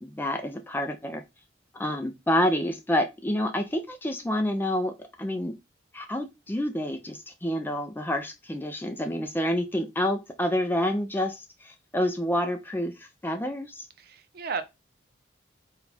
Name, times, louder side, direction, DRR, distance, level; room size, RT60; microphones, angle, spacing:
voice 1, 0.0-1.2 1.8-5.5 5.9-13.9, left 1 dB, 10° left, 0.4 m, -28 dB
voice 2, 14.0-14.6, right 5 dB, 55° right, 0.6 m, -33 dB
4.1 x 2.3 x 3.9 m
head